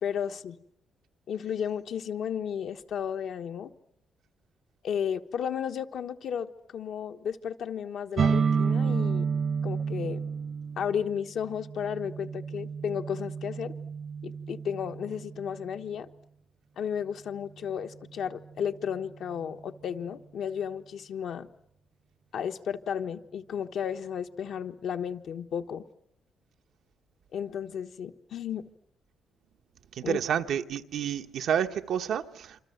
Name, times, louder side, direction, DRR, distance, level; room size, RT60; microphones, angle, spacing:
voice 1, 0.0-0.6 1.3-3.7 4.8-9.3 9.6-10.2 10.8-13.7 14.2-16.1 16.8-21.5 22.3-25.8 27.3-28.7 30.0-30.2, left 8 dB, 65° left, 1.2 m, -33 dB
sound 1, 8.2-15.8, right 6 dB, 45° right, 1.1 m, -30 dB
voice 2, 29.9-32.6, right 8 dB, 65° right, 1.1 m, -29 dB
27.0 x 25.5 x 7.9 m
cardioid pair, 140°, 0 cm